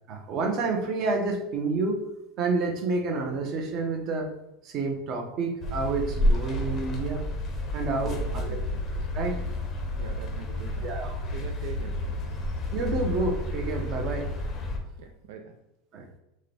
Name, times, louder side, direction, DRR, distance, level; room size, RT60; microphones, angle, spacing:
voice 1, 0.1-2.0 2.4-4.3 4.6-7.3 7.7-8.6 9.1-9.4 10.8-11.2 12.7-14.3 15.9-16.1, right 3 dB, 35° right, 3 dB, 0.8 m, -29 dB
sound 1, 5.6-14.8, left 1 dB, 20° left, 0.7 m, -30 dB
voice 2, 8.0-8.8 10.0-10.9 11.3-12.4 15.0-15.6, right 6 dB, 65° right, 5 dB, 0.5 m, -43 dB
6.3 x 2.2 x 3.4 m, 0.89 s
supercardioid pair, 170°, 0 cm